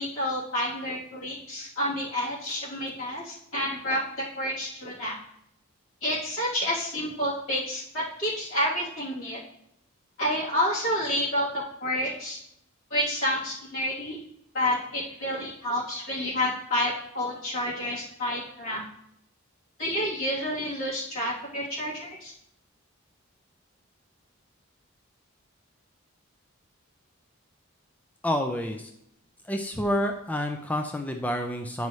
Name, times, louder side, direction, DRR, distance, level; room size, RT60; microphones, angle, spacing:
voice 1, 0.0-4.0 4.4-5.1 6.0-9.4 10.2-12.4 12.9-14.2 14.5-18.8 19.8-22.3, left 1 dB, 75° left, -7 dB, 3.2 m, -29 dB
voice 2, 28.2-28.9 29.5-31.9, equal, 5° left, 4 dB, 0.4 m, -28 dB
10.0 x 5.4 x 3.2 m, 0.76 s
head